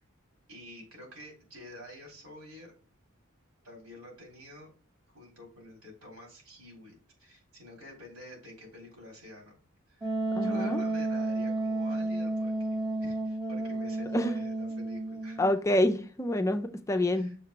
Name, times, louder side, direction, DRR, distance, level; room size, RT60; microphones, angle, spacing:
voice 1, 0.5-2.7 3.6-4.7 5.1-9.6 9.9-15.4 17.1-17.3, left 1 dB, 85° right, 3.7 m, -49 dB
Wind instrument woodwind instrument, 10.0-15.5, right 2 dB, 20° right, 1.0 m, -31 dB
voice 2, 10.3-10.8 14.1-14.3 15.4-17.4, left 1 dB, 15° left, 0.4 m, -27 dB
6.6 x 3.2 x 5.8 m
head